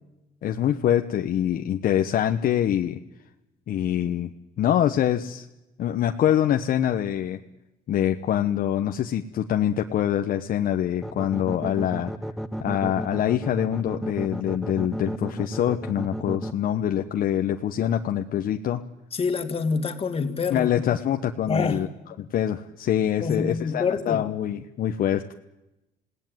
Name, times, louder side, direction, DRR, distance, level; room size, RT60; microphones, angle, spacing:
voice 1, 0.4-3.0 3.7-5.5 5.8-7.4 7.9-12.1 12.6-18.8 20.5-21.9 22.2-25.3, left 10 dB, 60° left, 6 dB, 1.1 m, -25 dB
sound 1, 11.0-16.5, equal, ahead, 1.1 m, -32 dB
voice 2, 19.1-20.7 21.5-21.8 23.2-24.2, left 5 dB, 35° left, 7 dB, 2.4 m, -26 dB
27.5 x 18.0 x 9.3 m, 1.0 s
cardioid pair, 110°, 17 cm